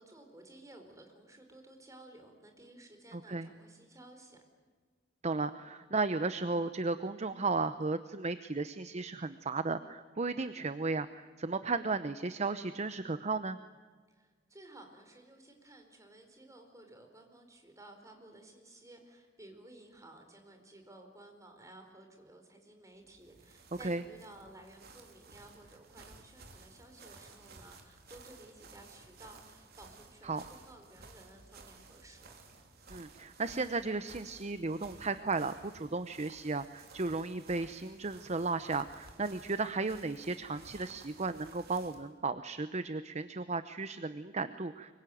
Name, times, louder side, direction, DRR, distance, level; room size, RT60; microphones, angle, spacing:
voice 1, 0.0-4.4 14.1-32.4, right 1 dB, 15° right, 4 dB, 4.7 m, -55 dB
voice 2, 3.1-3.5 5.2-13.6 23.8-24.0 30.2-30.4 32.9-44.9, right 3 dB, 35° right, 11 dB, 0.8 m, -35 dB
sound 1, 23.0-42.1, right 3 dB, 55° right, 3.4 m, -56 dB
25.0 x 23.0 x 9.3 m, 1.5 s
head